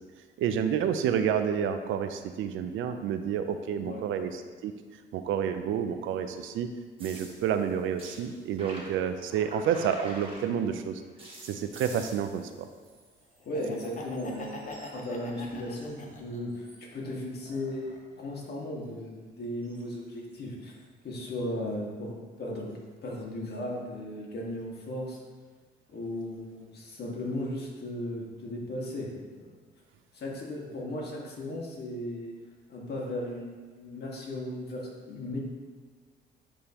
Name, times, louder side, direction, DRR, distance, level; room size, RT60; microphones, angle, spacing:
voice 1, 0.4-4.7 5.1-6.7 7.0-11.0 11.4-12.7, right 8 dB, 80° right, 8 dB, 0.5 m, -29 dB
voice 2, 3.7-4.0 13.4-20.8 21.0-25.2 25.9-29.5 30.1-32.3 32.7-35.4, left 1 dB, 55° left, -3 dB, 1.8 m, -36 dB
sound 1, 7.0-10.8 11.2-13.5 13.7-16.1 16.5-16.9 19.6-19.8 20.7-20.8, right 1 dB, 25° right, 1.7 m, -49 dB
Laughter, 13.4-16.6 17.0-18.1, left 3 dB, 40° left, 0.9 m, -44 dB
10.0 x 3.6 x 3.0 m, 1.5 s
cardioid pair, 90°, 20 cm